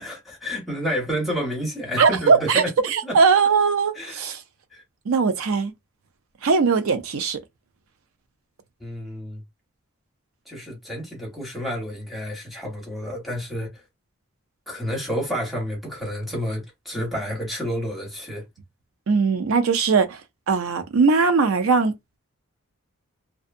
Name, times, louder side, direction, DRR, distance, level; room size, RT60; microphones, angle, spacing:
voice 1, 0.0-2.7 3.0-3.2 3.9-4.2 4.7-4.8 8.8-9.4 10.5-13.7 14.7-18.4, equal, ahead, 1.0 m, -30 dB
voice 2, 2.0-4.4 5.1-5.7 6.4-7.4 19.1-20.2 20.5-21.9, right 5 dB, 70° right, 0.5 m, -20 dB
2.6 x 2.2 x 2.5 m
head